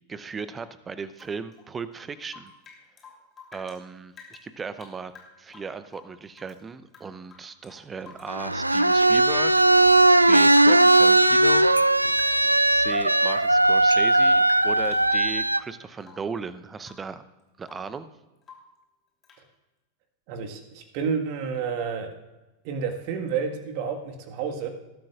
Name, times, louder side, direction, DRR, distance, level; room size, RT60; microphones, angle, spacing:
voice 1, 0.1-2.5 3.5-5.1 5.4-9.6 10.0-11.7 12.7-17.2 17.6-18.1, right 5 dB, 15° right, 14 dB, 0.7 m, -36 dB
Rain / Drip, 1.1-3.8 4.1-6.6 6.9-8.6 8.8-9.5 9.8-11.8 12.1-12.6 12.9-15.4 16.0-16.4 16.8-17.1 17.4-18.0 18.4-18.8 19.2-19.5, left 5 dB, 25° left, 3.1 m, -51 dB
sound 1, 8.3-15.6, right 2 dB, 85° right, 0.3 m, -18 dB
voice 2, 20.3-22.1 22.6-24.7, right 6 dB, 45° right, 5 dB, 1.6 m, -30 dB
19.5 x 12.0 x 2.4 m, 1.1 s
figure-of-eight pair, 90°, 0 cm